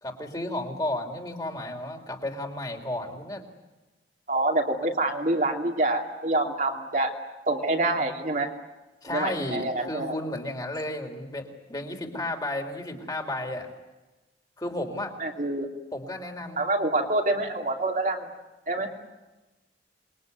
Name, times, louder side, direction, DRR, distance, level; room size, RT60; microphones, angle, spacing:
voice 1, 0.0-3.5 9.0-13.7 14.6-15.1 15.9-16.6, left 1 dB, 20° left, 3 dB, 3.7 m, -33 dB
voice 2, 4.3-7.1 7.5-8.5 9.1-10.2 15.2-15.7 16.6-18.3 18.7-18.9, right 2 dB, 45° right, 1 dB, 3.0 m, -26 dB
28.0 x 22.0 x 9.6 m, 1.1 s
head